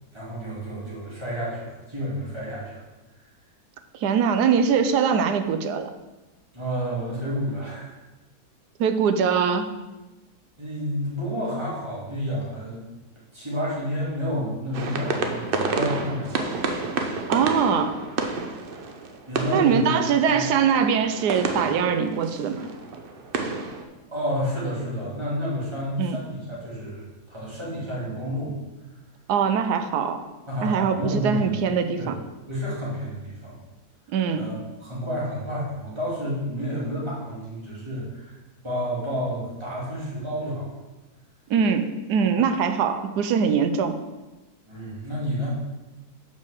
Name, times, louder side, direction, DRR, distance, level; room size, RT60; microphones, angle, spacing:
voice 1, 0.1-2.8 6.5-8.0 10.6-12.8 13.3-16.6 19.3-19.9 20.3-20.4 24.1-28.6 30.5-31.5 32.0-32.1 32.5-33.6 34.3-38.3 38.6-40.7 44.7-45.6, equal, 15° right, -7 dB, 2.6 m, -30 dB
voice 2, 3.9-5.9 8.8-9.7 17.3-18.0 19.5-22.7 26.0-26.2 29.3-30.2 30.6-32.2 34.1-34.5 41.5-44.0, right 6 dB, 90° right, 9 dB, 1.2 m, -22 dB
sound 1, 14.7-23.8, right 3 dB, 55° right, 0.6 m, -30 dB
5.4 x 5.3 x 6.4 m, 1.1 s
omnidirectional pair, 1.7 m